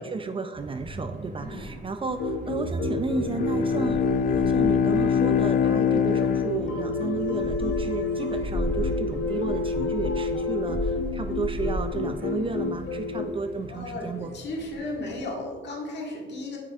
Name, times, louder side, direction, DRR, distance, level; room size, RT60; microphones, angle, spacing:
voice 1, 0.0-14.3, right 4 dB, 25° right, 7 dB, 0.4 m, -33 dB
sound 1, 0.5-15.2, right 1 dB, 60° right, 2.0 m, -36 dB
sound 2, 2.1-13.3, left 3 dB, 75° left, 0.9 m, -30 dB
Bowed string instrument, 3.1-7.5, left 7 dB, 45° left, 0.4 m, -24 dB
voice 2, 13.7-16.6, left 2 dB, 60° left, -1 dB, 1.7 m, -35 dB
7.5 x 6.4 x 2.4 m, 1.4 s
cardioid pair, 90°, 20 cm